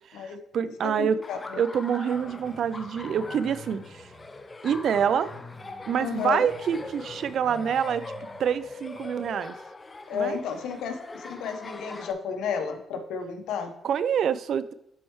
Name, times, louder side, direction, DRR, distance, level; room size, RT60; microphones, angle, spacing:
voice 1, 0.0-1.2 1.6-4.1 4.6-5.3 5.9-8.0 8.4-9.5 10.1-10.4 13.8-14.7, right 8 dB, 65° right, 15 dB, 0.5 m, -26 dB
voice 2, 0.8-1.6 6.0-6.4 10.1-13.7, left 6 dB, 85° left, 6 dB, 1.1 m, -32 dB
Laughter, 1.2-12.1, left 2 dB, 25° left, 0.7 m, -42 dB
Growling, 2.1-9.4, left 1 dB, ahead, 2.2 m, -49 dB
11.5 x 4.5 x 3.1 m, 0.81 s
cardioid pair, 90°, 0 cm